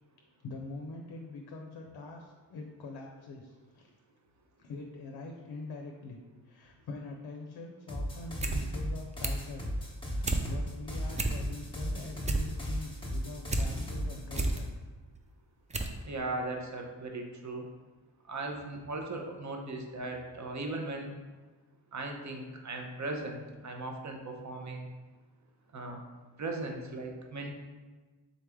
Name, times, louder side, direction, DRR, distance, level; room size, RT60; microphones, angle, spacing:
voice 1, 0.4-3.9 4.6-9.7 10.0-14.7, left 3 dB, 60° left, 2 dB, 0.6 m, -44 dB
sound 1, 7.9-14.7, equal, 10° left, 1.1 m, -36 dB
sound 2, 8.2-8.6 8.9-9.5 9.9-10.4 10.8-10.9 11.1-11.7 12.0-13.7 14.1-14.6 15.2-15.3 15.7-16.0 16.3-16.4, right 2 dB, 15° right, 0.3 m, -32 dB
voice 2, 16.0-17.6 18.3-21.1 21.9-24.9 25.7-26.0 26.4-27.5, right 2 dB, 40° right, 2 dB, 0.7 m, -38 dB
3.9 x 3.1 x 3.5 m, 1.3 s
cardioid pair, 65°, 46 cm